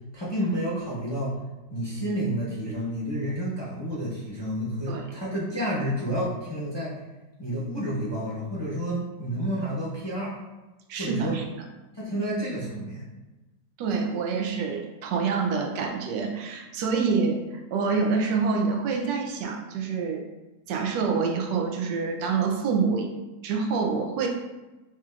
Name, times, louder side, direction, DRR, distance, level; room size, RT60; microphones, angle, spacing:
voice 1, 0.1-1.3 1.7-6.9 7.4-10.3 11.0-11.4 11.9-13.0, equal, 20° left, -8 dB, 0.7 m, -30 dB
voice 2, 10.9-11.4 13.8-17.4 17.7-20.2 20.7-23.1 23.4-24.3, right 5 dB, 85° right, 2 dB, 1.3 m, -26 dB
6.1 x 2.9 x 2.4 m, 1.1 s
omnidirectional pair, 1.8 m